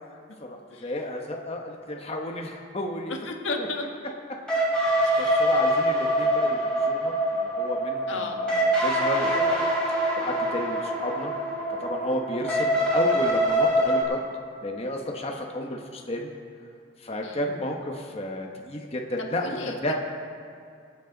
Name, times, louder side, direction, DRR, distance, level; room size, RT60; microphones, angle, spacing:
voice 1, 0.4-3.1 3.6-3.7 4.8-9.7 10.2-11.3 11.8-14.2 14.6-16.3 17.0-20.0, left 1 dB, 30° left, 1 dB, 1.0 m, -32 dB
voice 2, 3.1-3.8 5.0-5.4 8.1-8.4 17.2-17.4 19.3-19.8, left 3 dB, 85° left, 2 dB, 1.5 m, -34 dB
sound 1, 4.5-14.0, right 1 dB, 5° left, 3.1 m, -24 dB
23.0 x 8.4 x 3.9 m, 2.4 s
head